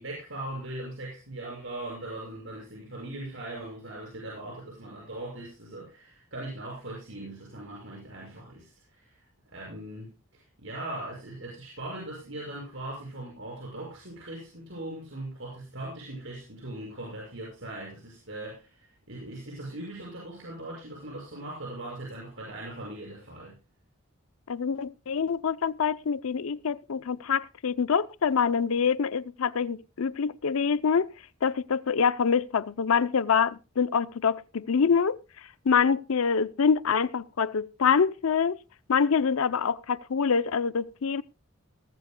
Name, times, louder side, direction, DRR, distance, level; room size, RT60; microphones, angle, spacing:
voice 1, 0.0-23.5, right 1 dB, 70° right, 6.3 m, -40 dB
voice 2, 24.5-31.1 31.4-35.2 35.6-38.6 38.9-41.2, left 6 dB, 85° left, 0.5 m, -25 dB
19.0 x 15.0 x 2.2 m
head